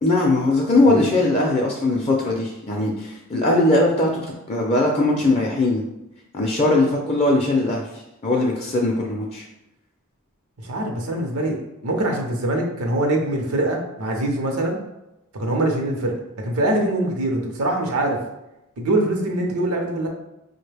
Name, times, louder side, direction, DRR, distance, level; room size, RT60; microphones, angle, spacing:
voice 1, 0.0-4.2 4.5-5.8 6.3-7.8 8.2-9.5, left 2 dB, 30° left, -1 dB, 0.4 m, -20 dB
voice 2, 10.6-11.6 11.8-14.8 15.3-18.2 18.8-20.1, right 1 dB, 85° right, 2 dB, 0.7 m, -23 dB
4.6 x 2.1 x 3.3 m, 0.93 s
head